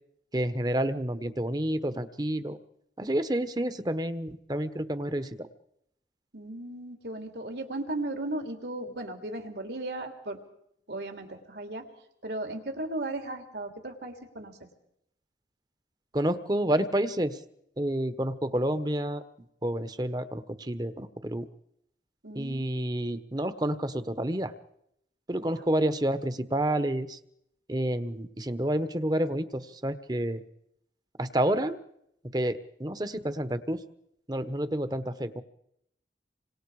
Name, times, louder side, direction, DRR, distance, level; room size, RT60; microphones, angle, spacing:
voice 1, 0.3-2.6 3.0-5.5 16.1-17.4 17.8-19.2 19.6-21.5 22.3-24.5 25.3-27.2 27.7-30.4 31.2-31.8 32.3-33.8 34.3-35.4, right 1 dB, 25° right, 11 dB, 1.2 m, -29 dB
voice 2, 6.3-10.4 10.9-11.9 12.2-14.7 22.2-23.0 25.4-25.6, right 2 dB, 70° right, 5 dB, 3.2 m, -36 dB
27.5 x 25.0 x 4.9 m, 0.76 s
head